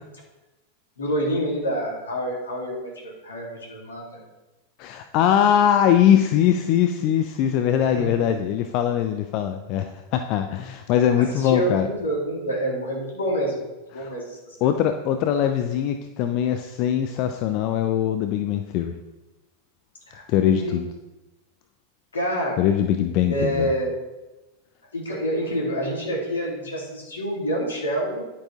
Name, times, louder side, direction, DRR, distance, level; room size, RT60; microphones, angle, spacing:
voice 1, 1.0-4.2 7.9-8.2 11.3-13.5 13.9-14.7 20.1-20.2 20.5-20.8 22.1-22.6 23.3-23.9 24.9-28.3, equal, 70° left, -2 dB, 3.4 m, -27 dB
voice 2, 4.8-11.9 14.0-14.2 14.6-18.9 20.3-20.9 22.6-23.7, left 9 dB, 40° left, 7 dB, 0.6 m, -21 dB
10.5 x 8.3 x 3.7 m, 1.1 s
figure-of-eight pair, 90°, 0 cm